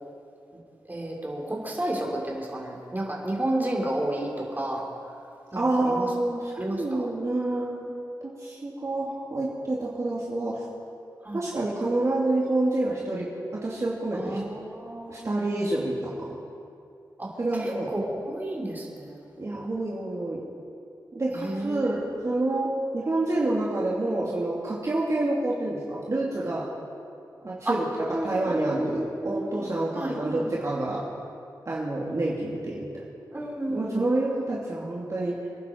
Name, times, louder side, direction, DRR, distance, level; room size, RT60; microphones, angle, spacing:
voice 1, 0.9-4.8 5.5-6.1 6.6-7.1 11.2-11.4 14.1-15.4 17.2-17.3 17.6-19.2 21.3-22.0 27.7-27.8 28.1-29.5 29.9-30.5 33.3-34.0, right 1 dB, 25° right, -2 dB, 3.8 m, -31 dB
voice 2, 5.5-7.9 8.2-10.7 11.3-13.3 13.6-14.4 15.1-16.4 17.4-17.9 19.4-20.4 21.1-26.6 27.4-31.0 31.7-32.9 33.7-35.4, right 2 dB, 45° right, -6 dB, 2.7 m, -28 dB
26.0 x 11.0 x 4.6 m, 2.5 s
cardioid pair, 65°, 7 cm